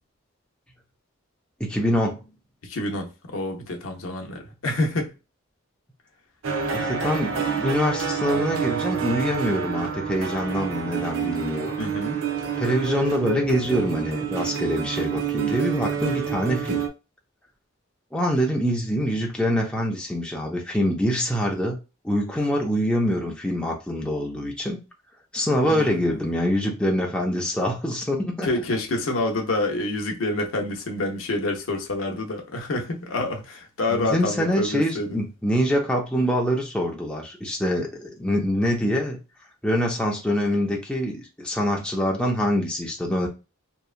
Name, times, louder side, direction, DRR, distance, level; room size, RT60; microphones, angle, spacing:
voice 1, 1.6-2.2 6.7-11.7 12.6-16.8 18.1-21.8 22.0-24.8 25.3-28.5 33.9-39.2 39.6-43.3, equal, 5° left, 0.5 m, -25 dB
voice 2, 2.6-5.1 11.8-12.2 25.6-26.0 28.4-35.2, left 2 dB, 80° left, 0.7 m, -27 dB
sound 1, 6.4-16.9, right 7 dB, 75° right, 0.5 m, -28 dB
2.8 x 2.3 x 2.4 m
head